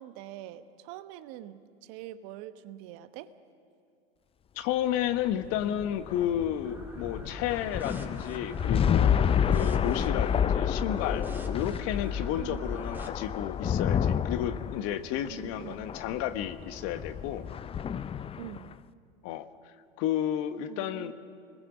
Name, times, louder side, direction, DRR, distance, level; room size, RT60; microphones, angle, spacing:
voice 1, 0.0-3.3 12.3-12.7 15.2-15.8 18.4-18.7 20.7-21.1, right 13 dB, 55° right, 11 dB, 1.2 m, -44 dB
voice 2, 4.6-17.4 19.2-21.1, left 11 dB, 50° left, 11 dB, 1.2 m, -32 dB
sound 1, 5.1-18.7, left 8 dB, 20° left, 0.5 m, -29 dB
sound 2, 6.6-13.1, right 2 dB, 5° right, 2.4 m, -46 dB
29.0 x 21.0 x 6.2 m, 2.4 s
hypercardioid pair, 90°, 32 cm